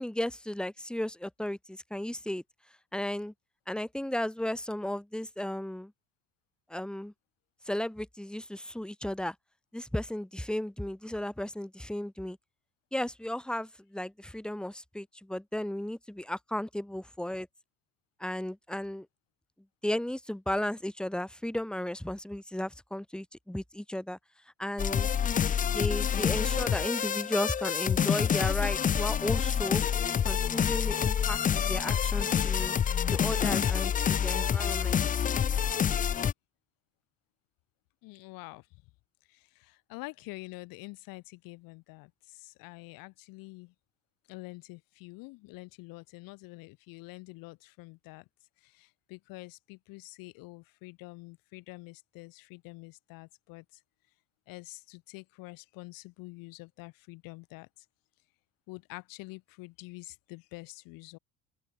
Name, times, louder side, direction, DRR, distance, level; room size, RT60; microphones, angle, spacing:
voice 1, 0.0-2.4 2.9-3.3 3.7-5.9 6.7-7.1 7.7-9.4 9.7-12.4 12.9-17.5 18.2-19.1 19.8-24.2 24.6-25.1 25.5-29.8 30.2-32.7 33.1-35.0, left 1 dB, ahead, 2.2 m, -34 dB
sound 1, 24.8-36.3, left 8 dB, 25° left, 0.5 m, -27 dB
voice 2, 38.0-38.8 39.3-43.7 44.3-48.3 48.6-53.8 54.5-57.9 58.7-61.2, left 24 dB, 75° left, 4.2 m, -47 dB
open air
supercardioid pair, 100°, 35 cm